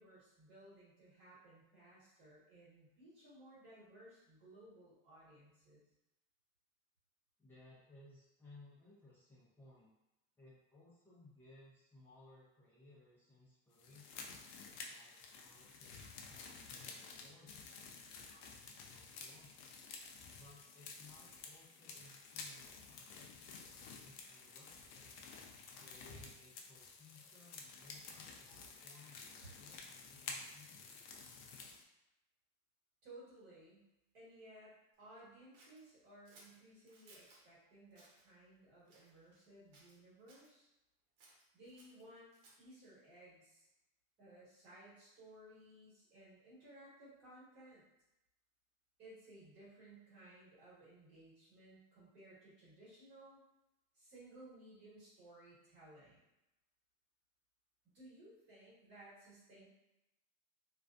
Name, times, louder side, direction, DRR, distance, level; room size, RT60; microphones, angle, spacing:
voice 1, 0.0-5.8 29.4-29.5 33.0-33.9 34.1-40.7 41.5-42.3 42.6-43.7 44.2-47.8 49.0-53.4 53.9-56.2 57.9-59.7, right 1 dB, 35° right, -9 dB, 1.3 m, -59 dB
voice 2, 7.4-9.9 10.4-14.4 14.9-19.7 20.3-25.3 25.8-31.6, left 2 dB, 5° left, -10 dB, 0.6 m, -63 dB
sound 1, 13.8-31.8, left 4 dB, 55° left, 0.4 m, -52 dB
Scissors, 35.5-37.4 37.9-38.3 38.9-39.5 39.7-40.5 41.2-42.7, right 2 dB, 70° right, 0.8 m, -65 dB
2.4 x 2.3 x 2.4 m, 0.91 s
supercardioid pair, 165°, 30 cm